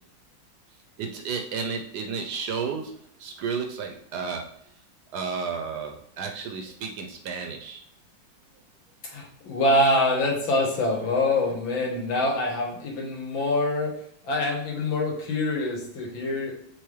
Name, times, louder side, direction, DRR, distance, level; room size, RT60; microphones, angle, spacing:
voice 1, 1.0-4.7 5.1-7.8, right 5 dB, 70° right, 4 dB, 1.0 m, -32 dB
voice 2, 9.1-13.9 14.3-16.5, left 1 dB, 85° left, 0 dB, 1.9 m, -25 dB
4.5 x 3.8 x 3.1 m, 0.67 s
omnidirectional pair, 2.1 m